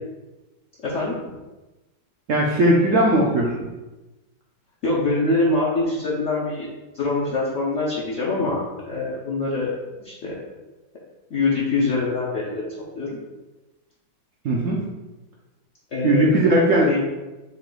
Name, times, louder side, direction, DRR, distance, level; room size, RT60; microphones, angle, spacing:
voice 1, 0.8-1.1 4.8-6.7 6.9-9.7 10.0-10.4 11.3-12.6 13.0-13.1 15.9-16.3 16.7-17.0, left 3 dB, 55° left, -5 dB, 0.8 m, -24 dB
voice 2, 2.3-3.5 14.4-14.8 16.0-16.9, right 1 dB, 70° right, -3 dB, 0.7 m, -18 dB
5.8 x 2.4 x 3.8 m, 1.1 s
omnidirectional pair, 2.0 m